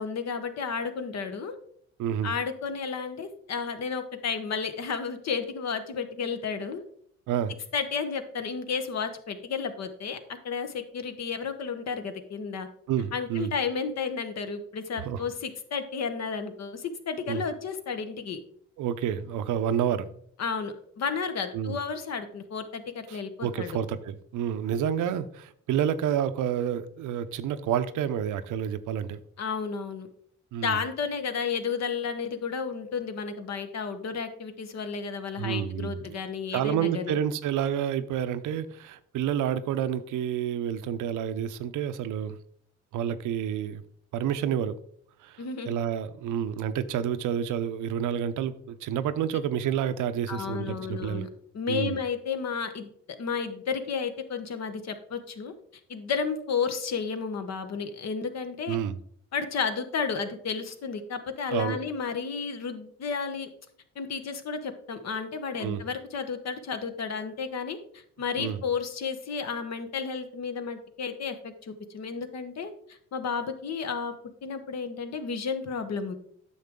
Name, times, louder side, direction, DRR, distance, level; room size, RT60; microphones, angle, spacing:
voice 1, 0.0-1.5 2.2-6.8 7.7-12.7 13.1-18.4 20.4-23.8 29.4-30.1 30.6-37.2 45.4-45.8 50.3-51.3 51.5-52.9 53.2-55.5 55.9-58.8 59.3-63.5 63.9-74.1 74.4-76.2, left 5 dB, 60° left, 1.2 m, -32 dB
voice 2, 2.0-2.3 7.3-7.5 12.9-13.5 15.0-15.2 17.3-17.4 18.8-20.1 21.5-21.8 23.1-29.2 30.5-30.8 35.4-36.2 36.5-42.4 42.9-43.8 44.1-44.8 45.2-51.3 51.7-52.0 58.7-59.0 61.5-61.8 65.6-65.8 68.4-68.6, right 9 dB, 80° right, 0.7 m, -29 dB
9.3 x 6.5 x 3.6 m
cardioid pair, 90°, 30 cm